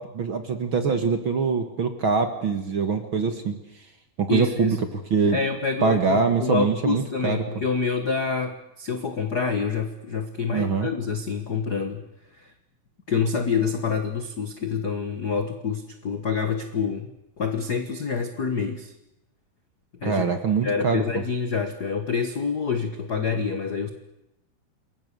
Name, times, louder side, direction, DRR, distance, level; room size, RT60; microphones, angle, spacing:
voice 1, 0.0-3.6 4.2-4.8 5.1-5.4 5.8-7.4 10.5-10.9 20.0-21.0, right 5 dB, 45° right, 8 dB, 1.8 m, -23 dB
voice 2, 4.3-4.8 5.3-12.0 12.4-12.5 13.1-17.1 17.4-18.9 20.0-20.2 20.6-23.9, left 5 dB, 50° left, 7 dB, 1.2 m, -27 dB
28.5 x 22.5 x 6.9 m, 0.88 s
omnidirectional pair, 4.2 m